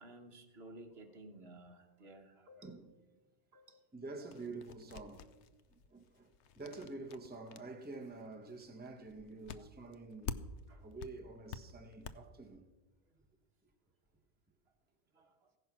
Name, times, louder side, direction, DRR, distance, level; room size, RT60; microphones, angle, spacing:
voice 1, 0.0-2.8 3.5-3.9 9.6-9.7 10.7-10.9 15.1-15.5, right 1 dB, 60° right, 1.6 m, -55 dB
voice 2, 2.6-2.9 3.9-5.3 5.9-10.4 10.8-12.7, right 3 dB, 10° right, 1.0 m, -48 dB
sound 1, 4.3-10.7 11.0-12.1, left 7 dB, 75° left, 1.0 m, -47 dB
16.0 x 10.5 x 6.0 m
omnidirectional pair, 1.2 m